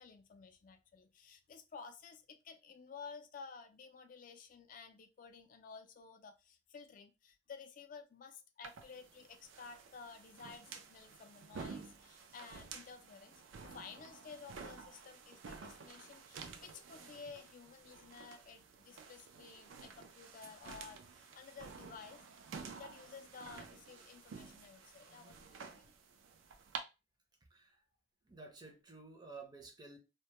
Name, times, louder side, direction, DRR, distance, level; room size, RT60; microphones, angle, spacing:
voice 1, 0.0-13.3 13.6-22.3 22.7-25.9, left 5 dB, 45° left, 0.3 m, -53 dB
sound 1, 8.6-26.8, right 5 dB, 90° right, 0.4 m, -51 dB
voice 2, 27.5-27.8 28.2-30.0, right 3 dB, 20° right, 0.5 m, -53 dB
2.1 x 2.1 x 2.8 m
head